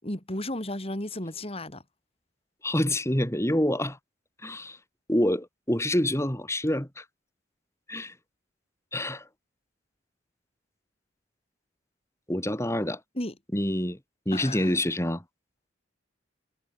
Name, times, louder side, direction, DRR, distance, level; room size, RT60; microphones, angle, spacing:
voice 1, 0.0-1.8 13.2-13.3 14.3-14.8, left 1 dB, 30° left, 4.2 m, -34 dB
voice 2, 2.6-4.0 4.4-4.8 5.1-7.0 7.9-8.1 8.9-9.2 12.3-13.0 13.5-14.0 14.2-15.2, left 1 dB, 15° left, 5.1 m, -27 dB
head